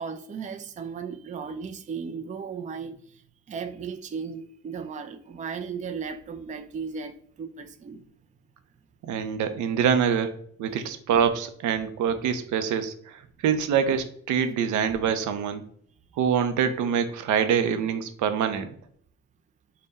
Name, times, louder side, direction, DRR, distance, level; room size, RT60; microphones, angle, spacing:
voice 1, 0.0-3.2 3.5-8.0 10.7-10.9, right 6 dB, 25° right, 0.4 m, -36 dB
voice 2, 9.0-10.3 10.6-15.7 16.2-18.7, right 7 dB, 75° right, 0.5 m, -25 dB
3.5 x 2.2 x 3.9 m
cardioid pair, 90°, 30 cm